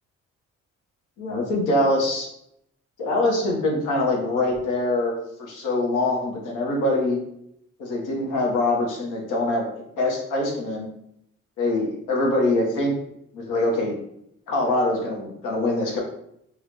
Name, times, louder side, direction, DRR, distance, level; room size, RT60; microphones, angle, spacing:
voice 1, 1.2-2.3 3.0-7.2 7.8-9.6 10.0-10.9 11.6-12.9 13.3-14.0 14.5-16.0, left 2 dB, 90° left, 0 dB, 1.0 m, -24 dB
3.7 x 2.2 x 3.2 m, 0.74 s
cardioid pair, 90°, 30 cm